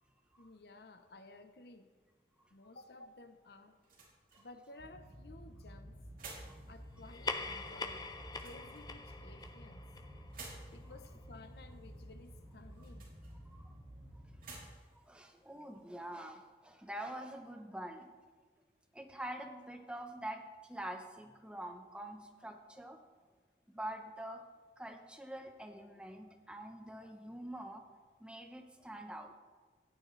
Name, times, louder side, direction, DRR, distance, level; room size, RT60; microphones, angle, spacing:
voice 1, 0.4-1.9 2.5-3.8 4.4-5.9 6.7-8.1 8.4-9.9 10.7-13.1, left 2 dB, 65° left, 8 dB, 0.8 m, -55 dB
sound 1, 3.0-16.5, right 3 dB, 50° right, 3.1 m, -58 dB
sound 2, 4.8-14.7, equal, 30° right, 2.1 m, -52 dB
sound 3, 7.0-11.9, left 3 dB, 25° left, 0.6 m, -44 dB
voice 2, 13.5-13.8 14.1-14.2 14.9-18.1 18.9-23.0 23.7-24.5 24.8-27.8 28.2-29.4, right 1 dB, 5° right, 4 dB, 0.8 m, -46 dB
16.5 x 9.3 x 3.2 m, 1.4 s
head